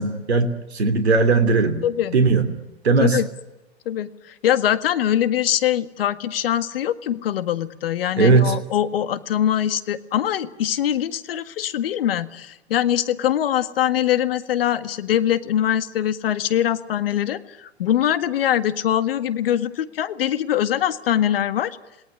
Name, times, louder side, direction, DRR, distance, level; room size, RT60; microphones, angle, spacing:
voice 1, 0.0-1.8 2.1-2.4 2.8-3.2 8.2-8.5, right 4 dB, 75° right, 9 dB, 3.0 m, -18 dB
voice 2, 1.8-2.2 3.0-3.3 3.9-21.7, left 11 dB, 60° left, 13 dB, 1.8 m, -23 dB
28.0 x 19.0 x 9.8 m, 0.99 s
figure-of-eight pair, 110°, 32 cm